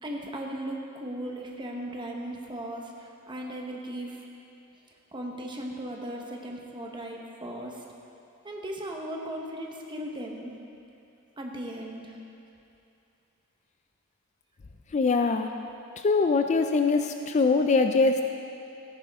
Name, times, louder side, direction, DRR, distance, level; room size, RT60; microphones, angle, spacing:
voice 1, 0.0-4.2 5.1-7.8 8.4-10.6 11.4-12.2, right 1 dB, 20° right, 0 dB, 1.0 m, -37 dB
voice 2, 14.9-15.5 16.0-18.2, left 4 dB, 30° left, 6 dB, 0.3 m, -23 dB
14.0 x 10.0 x 3.6 m, 2.7 s
head